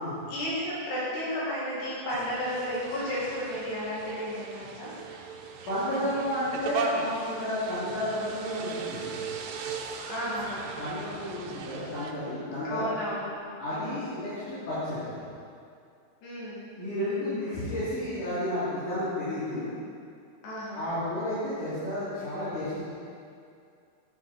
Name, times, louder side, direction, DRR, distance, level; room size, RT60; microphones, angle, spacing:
voice 1, 0.3-4.9 10.1-10.6 12.6-13.3 13.7-14.0 16.2-16.7 20.4-20.9, equal, 80° left, -8 dB, 4.5 m, -33 dB
sound 1, 2.1-12.1, right 5 dB, 90° right, 2.9 m, -38 dB
voice 2, 5.7-9.2 10.8-12.8 13.6-15.2 16.8-19.6 20.7-22.8, left 1 dB, 50° left, -14 dB, 4.1 m, -32 dB
11.5 x 9.6 x 4.3 m, 2.4 s
omnidirectional pair, 4.7 m